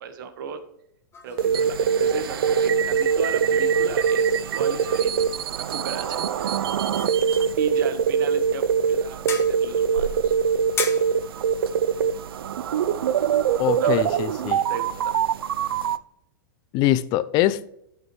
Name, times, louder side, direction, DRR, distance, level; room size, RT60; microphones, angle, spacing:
voice 1, 0.0-0.6 1.2-6.7 7.6-10.4 13.8-14.1 14.7-15.2, right 7 dB, 65° right, 9 dB, 1.2 m, -35 dB
sound 1, 1.1-14.2, left 5 dB, 20° left, 1.1 m, -41 dB
sound 2, 1.4-16.0, right 7 dB, 85° right, 0.4 m, -23 dB
voice 2, 13.6-14.6 16.7-17.7, left 14 dB, 40° left, 15 dB, 0.5 m, -23 dB
11.0 x 5.7 x 3.0 m, 0.75 s
hypercardioid pair, 130°, 12 cm